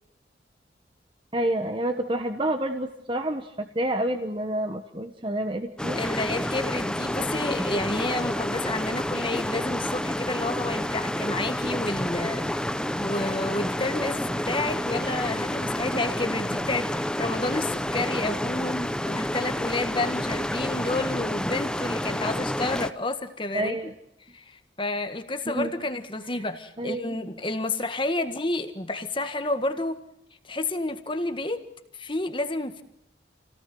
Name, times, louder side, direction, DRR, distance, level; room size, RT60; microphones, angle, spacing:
voice 1, 1.3-6.0 23.5-23.9 25.5-25.7 26.8-27.2, right 1 dB, 25° right, 1.3 m, -28 dB
sound 1, 5.8-22.9, left 1 dB, 5° left, 0.8 m, -29 dB
voice 2, 6.0-12.6 13.0-23.8 24.3-30.0 30.4-31.6 31.9-32.8, left 2 dB, 25° left, 1.7 m, -30 dB
29.0 x 18.5 x 7.7 m
head